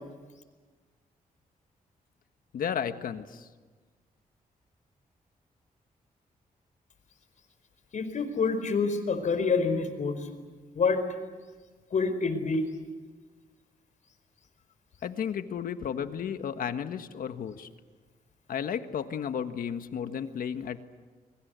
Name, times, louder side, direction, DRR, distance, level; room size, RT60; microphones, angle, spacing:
voice 1, 2.5-3.5 15.0-17.7 18.5-20.8, left 8 dB, 75° left, 9 dB, 1.5 m, -33 dB
voice 2, 7.9-10.2 10.7-11.0 11.9-12.7, left 4 dB, 60° left, 9 dB, 4.7 m, -27 dB
25.0 x 23.5 x 8.3 m, 1.4 s
cardioid pair, 95°, 15 cm